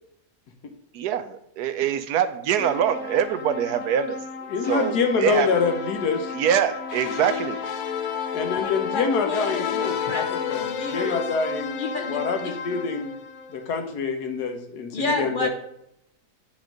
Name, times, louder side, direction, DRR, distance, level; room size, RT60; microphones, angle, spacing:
voice 1, 0.9-4.2 4.7-5.5 6.4-7.6, right 9 dB, 85° right, 11 dB, 1.2 m, -24 dB
sound 1, 2.6-13.8, left 7 dB, 70° left, 1.1 m, -32 dB
voice 2, 4.5-6.3 8.3-10.6 10.9-13.1 13.5-15.5, left 5 dB, 90° left, 6 dB, 1.5 m, -26 dB
voice 3, 8.6-11.2 11.8-12.8 14.9-15.5, left 3 dB, 55° left, 4 dB, 0.6 m, -31 dB
8.6 x 3.1 x 5.0 m, 0.78 s
omnidirectional pair, 1.7 m